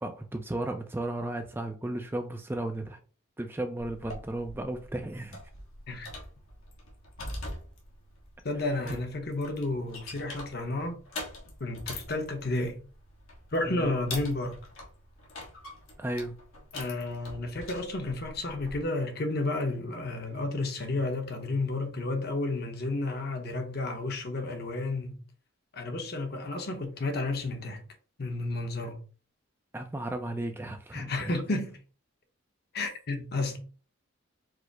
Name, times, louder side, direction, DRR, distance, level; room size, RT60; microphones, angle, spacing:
voice 1, 0.0-3.0 3.4-5.4 8.8-9.0 13.6-14.0 16.0-16.4 29.7-31.3, right 1 dB, 10° right, 0.3 m, -34 dB
sound 1, 3.8-18.8, left 2 dB, 85° left, 1.3 m, -44 dB
voice 2, 8.4-11.0 11.6-12.8 13.5-14.5 16.7-25.1 25.7-27.8 28.2-29.0 30.9-31.7 32.7-33.6, left 2 dB, 50° left, 0.8 m, -31 dB
4.8 x 2.0 x 4.6 m
head